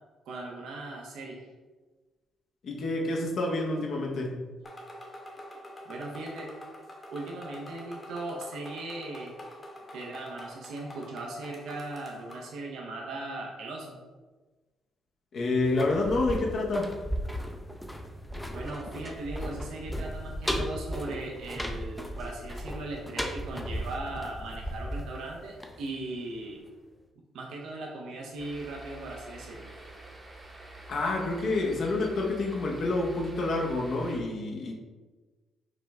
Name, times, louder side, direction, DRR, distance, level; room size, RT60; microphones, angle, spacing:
voice 1, 0.3-1.5 5.9-6.5 7.1-9.4 9.9-14.0 18.5-26.6 27.3-29.7, right 2 dB, 80° right, -1 dB, 0.6 m, -38 dB
voice 2, 2.6-4.4 15.3-16.9 30.9-34.7, left 2 dB, 60° left, -1 dB, 0.7 m, -28 dB
sound 1, 4.6-12.5, equal, 30° left, 1.0 m, -46 dB
sound 2, 15.6-26.4 26.7-26.8, equal, 5° left, 0.4 m, -36 dB
sound 3, 28.4-34.2, right 1 dB, 30° right, 0.8 m, -47 dB
4.9 x 2.1 x 3.4 m, 1.3 s
cardioid pair, 90°, 0 cm